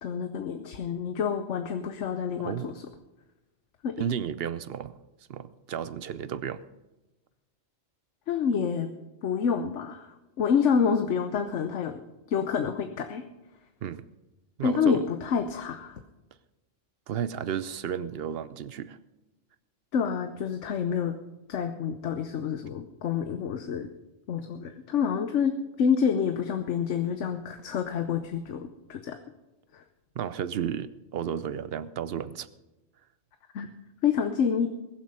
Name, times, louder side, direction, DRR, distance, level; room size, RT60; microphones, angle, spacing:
voice 1, 0.0-2.8 3.8-3.9 8.3-8.9 9.2-12.0 12.3-13.2 14.6-16.0 19.9-21.1 21.5-23.9 24.3-29.2 29.7-29.8 33.5-33.7 34.0-34.7, left 7 dB, 80° left, 7 dB, 1.1 m, -28 dB
voice 2, 2.4-2.7 4.0-5.0 5.3-6.6 13.8-14.0 14.6-15.0 17.1-19.0 30.2-32.5, right 8 dB, 60° right, 15 dB, 0.8 m, -33 dB
20.5 x 7.6 x 5.4 m, 1.1 s
omnidirectional pair, 1.2 m